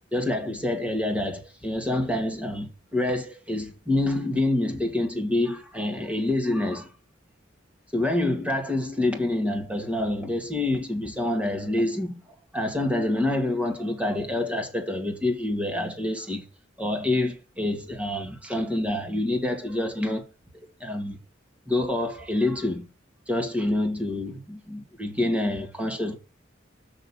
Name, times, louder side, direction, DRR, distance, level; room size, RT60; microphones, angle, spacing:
voice 1, 0.1-6.9 7.9-12.2 12.5-16.4 16.8-20.2 20.8-21.2 21.7-22.9 23.3-26.2, left 1 dB, 5° right, 2.1 m, -27 dB
6.5 x 6.4 x 7.2 m
head